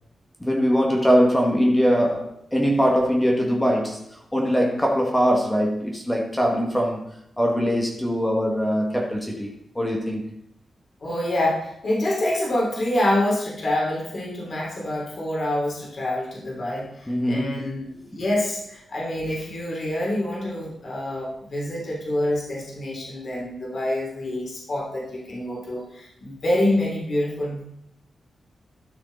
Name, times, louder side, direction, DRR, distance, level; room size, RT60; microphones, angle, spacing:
voice 1, 0.4-7.0 7.4-10.3 17.1-17.6 17.9-18.0, equal, 5° left, 1.5 m, -22 dB
voice 2, 11.0-17.9 18.2-27.6, left 1 dB, 45° left, 3.3 m, -26 dB
12.5 x 6.3 x 4.0 m
wide cardioid pair, 140°, 0 cm